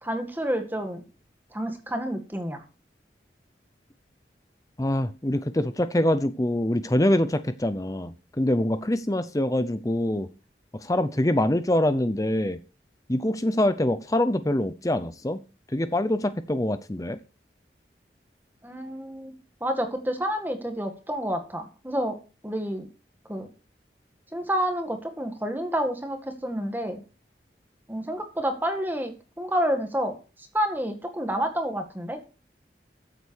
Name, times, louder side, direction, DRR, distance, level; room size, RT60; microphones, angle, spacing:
voice 1, 0.0-1.0 1.5-2.6 18.6-19.3 19.6-22.2 22.4-22.9 23.3-23.5 24.3-27.0 27.9-30.2 30.5-32.2, equal, 10° right, 5 dB, 1.9 m, -29 dB
voice 2, 4.8-10.3 10.7-12.6 13.1-15.4 15.7-17.2, left 1 dB, 20° left, 12 dB, 0.6 m, -24 dB
14.0 x 8.0 x 4.7 m, 0.34 s
head